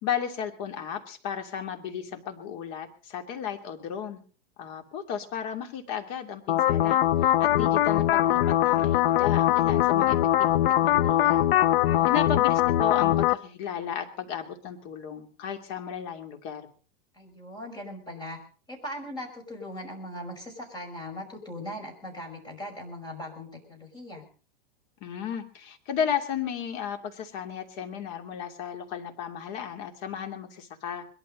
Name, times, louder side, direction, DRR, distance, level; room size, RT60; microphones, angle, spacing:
voice 1, 0.0-4.2 4.6-11.5 12.1-16.7 25.0-31.0, left 8 dB, 45° left, 6 dB, 2.8 m, -34 dB
sound 1, 6.5-13.3, left 13 dB, 70° left, 0.8 m, -22 dB
voice 2, 11.7-12.4 17.1-18.4 18.7-24.3, left 1 dB, 15° left, 2 dB, 5.7 m, -40 dB
21.5 x 12.5 x 5.4 m, 0.41 s
supercardioid pair, 150°, 30 cm